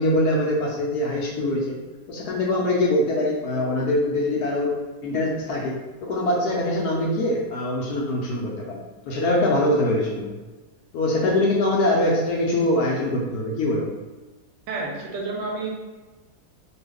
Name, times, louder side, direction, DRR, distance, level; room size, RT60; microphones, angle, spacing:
voice 1, 0.0-1.8 2.1-8.8 9.1-10.4 10.9-13.9, left 1 dB, 70° left, -2 dB, 1.0 m, -23 dB
voice 2, 14.7-15.7, right 3 dB, 75° right, -1 dB, 1.2 m, -29 dB
3.0 x 2.3 x 3.3 m, 1.2 s
omnidirectional pair, 2.0 m